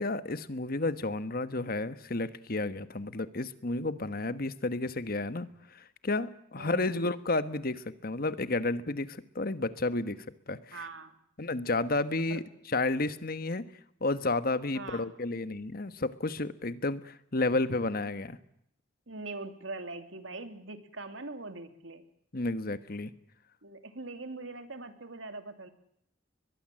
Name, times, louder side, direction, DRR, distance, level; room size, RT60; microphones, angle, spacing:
voice 1, 0.0-10.2 10.5-10.8 11.4-13.7 14.0-18.4 22.3-23.1, left 2 dB, 50° left, 12 dB, 1.4 m, -31 dB
voice 2, 6.6-7.0 10.7-11.1 12.3-12.4 14.7-15.1 19.1-22.0 23.6-25.7, right 3 dB, 90° right, 8 dB, 2.8 m, -42 dB
22.0 x 22.0 x 7.6 m, 0.72 s
head